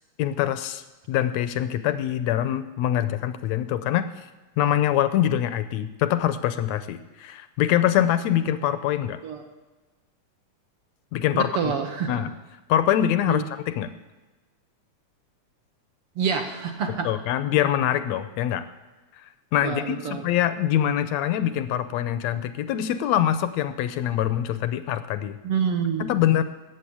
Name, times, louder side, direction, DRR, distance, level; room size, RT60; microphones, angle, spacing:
voice 1, 0.2-4.1 4.6-9.2 11.1-11.5 12.1-12.3 12.7-13.9 17.0-18.6 19.2-25.4 26.0-26.4, left 11 dB, 75° left, 11 dB, 1.7 m, -24 dB
voice 2, 11.3-12.2 13.3-13.4 16.1-17.1 19.6-20.3 25.4-26.1, right 7 dB, 60° right, 3 dB, 1.8 m, -27 dB
13.5 x 8.1 x 8.6 m, 1.2 s
omnidirectional pair, 3.4 m